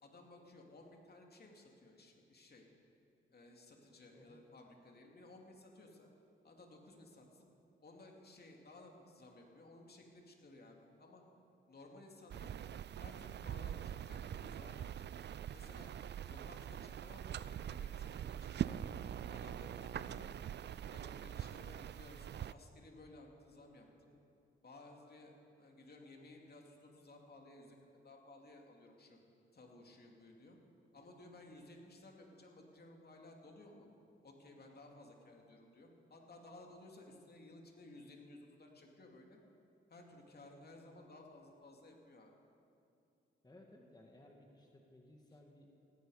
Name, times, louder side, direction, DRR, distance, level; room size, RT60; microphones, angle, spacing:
voice 1, 0.0-2.7 3.3-6.1 6.4-7.5 7.8-11.2 11.7-12.5 13.0-15.1 15.5-16.0 16.2-18.9 19.3-20.4 20.9-24.1 24.6-27.8 28.0-29.2 29.5-30.6 30.9-33.9 34.2-39.4 39.9-42.3 45.3-45.4, left 2 dB, 50° left, 1 dB, 2.7 m, -57 dB
sound 1, 12.3-22.5, right 10 dB, 55° right, 0.4 m, -43 dB
voice 2, 43.4-45.7, left 1 dB, 20° left, 0 dB, 2.0 m, -60 dB
17.0 x 16.0 x 5.0 m, 2.6 s
cardioid pair, 70°, 21 cm